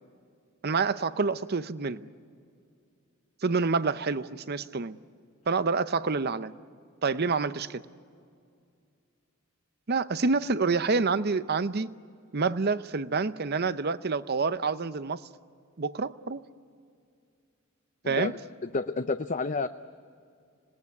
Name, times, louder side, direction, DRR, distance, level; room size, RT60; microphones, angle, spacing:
voice 1, 0.6-2.0 3.4-5.0 5.5-6.5 7.0-7.8 9.9-11.9 12.3-15.2 15.8-16.4 18.1-18.3, right 4 dB, 45° right, 14 dB, 0.7 m, -27 dB
voice 2, 18.0-19.7, left 3 dB, 35° left, 9 dB, 0.5 m, -30 dB
26.5 x 19.5 x 9.5 m, 2.3 s
head